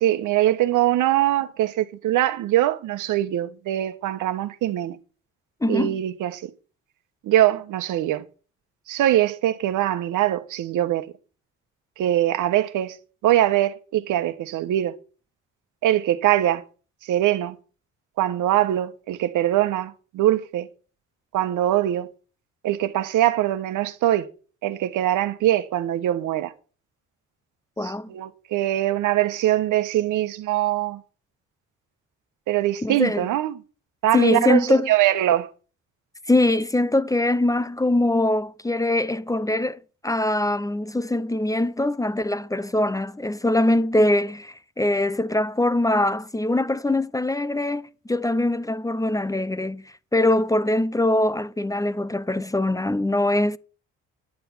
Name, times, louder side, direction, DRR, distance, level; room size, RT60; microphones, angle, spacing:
voice 1, 0.0-5.0 5.7-6.5 7.2-8.2 8.9-11.1 12.0-13.0 13.2-14.9 15.8-16.6 17.0-17.6 18.2-20.7 21.3-22.1 22.6-24.3 24.6-26.5 27.8-31.0 32.5-33.5 34.0-34.6 34.9-35.5, right 13 dB, 85° right, 1.2 m, -22 dB
voice 2, 5.6-6.0 27.8-28.1 32.8-33.3 34.1-34.9 36.3-53.6, left 1 dB, 10° left, 0.6 m, -22 dB
11.0 x 8.1 x 7.1 m
cardioid pair, 90°, 30 cm